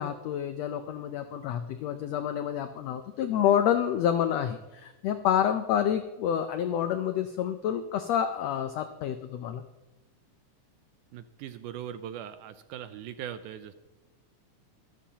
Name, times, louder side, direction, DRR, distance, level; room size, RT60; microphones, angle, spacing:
voice 1, 0.0-9.6, left 9 dB, 85° left, 8 dB, 1.4 m, -28 dB
voice 2, 11.1-13.7, right 10 dB, 80° right, 11 dB, 2.0 m, -40 dB
21.5 x 13.0 x 2.9 m, 1.1 s
omnidirectional pair, 3.8 m